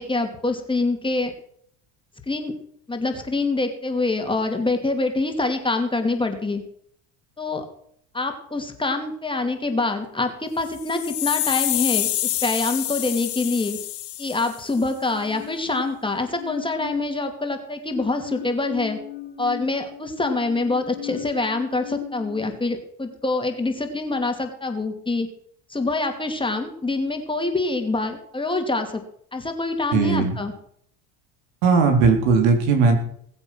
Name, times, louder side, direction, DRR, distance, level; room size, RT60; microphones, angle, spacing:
voice 1, 0.0-1.3 2.3-2.5 2.9-6.6 7.4-7.7 8.1-13.8 14.2-19.0 19.4-25.3 25.7-29.0 29.3-30.5, left 3 dB, 10° left, 4 dB, 2.7 m, -25 dB
sound 1, 10.6-14.8, left 14 dB, 60° left, 2.4 m, -27 dB
sound 2, 15.1-17.4 17.8-22.5, left 11 dB, 75° left, 2.1 m, -37 dB
voice 2, 29.9-30.3 31.6-33.0, right 4 dB, 80° right, 4 dB, 3.9 m, -18 dB
20.0 x 7.9 x 6.2 m, 0.65 s
supercardioid pair, 100°, 39 cm